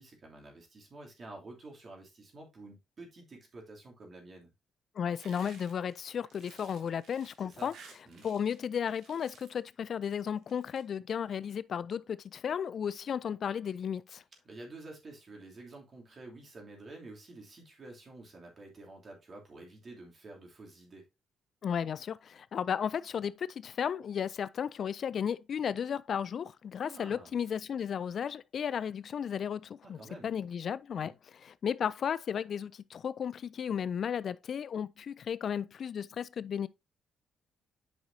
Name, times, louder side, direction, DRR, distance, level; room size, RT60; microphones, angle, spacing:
voice 1, 0.0-4.5 7.4-7.7 8.1-8.3 14.4-21.0 26.8-27.3 29.8-30.3 30.9-31.1, right 2 dB, 40° right, 2.9 m, -49 dB
voice 2, 5.0-7.7 8.2-14.2 21.6-31.1 31.4-36.7, left 8 dB, 55° left, 0.3 m, -34 dB
sound 1, 5.2-8.6 8.9-9.7 10.4-10.8, right 5 dB, 75° right, 2.2 m, -56 dB
8.8 x 5.6 x 2.7 m
cardioid pair, 90°, 0 cm